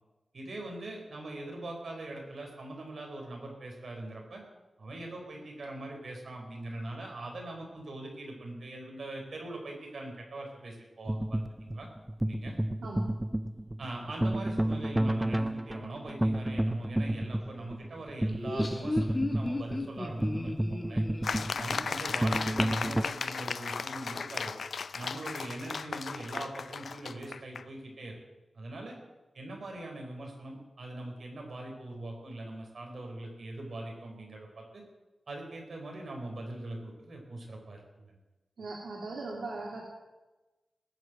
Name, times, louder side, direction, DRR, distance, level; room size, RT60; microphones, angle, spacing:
voice 1, 0.3-4.4 4.8-11.9 12.2-12.5 13.8-21.0 21.6-24.5 24.9-28.2 28.5-29.0 29.3-34.8 35.3-38.2, right 2 dB, 60° right, 0 dB, 4.5 m, -42 dB
sound 1, 11.1-23.0, right 1 dB, 10° right, 0.5 m, -31 dB
voice 2, 12.8-13.1 38.6-39.8, right 3 dB, 85° right, -2 dB, 2.5 m, -39 dB
Laughter, 18.3-22.9, left 2 dB, 20° left, 1.6 m, -35 dB
sound 2, 21.2-27.7, left 5 dB, 65° left, 0.5 m, -35 dB
19.5 x 8.0 x 7.8 m, 1.1 s
wide cardioid pair, 145°, 0 cm